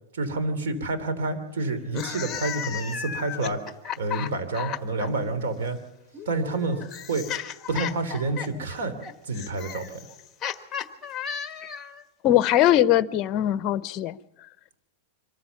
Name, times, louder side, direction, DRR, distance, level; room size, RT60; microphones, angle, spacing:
voice 1, 0.1-5.8 6.2-7.3 7.7-9.0 9.2-10.1, right 3 dB, 85° right, 3.3 m, -29 dB
sound 1, 1.8-5.1 6.1-12.0, left 8 dB, 20° left, 1.4 m, -34 dB
voice 2, 12.2-14.2, left 12 dB, 35° left, 0.8 m, -21 dB
25.0 x 15.0 x 7.2 m
supercardioid pair, 150°, 0 cm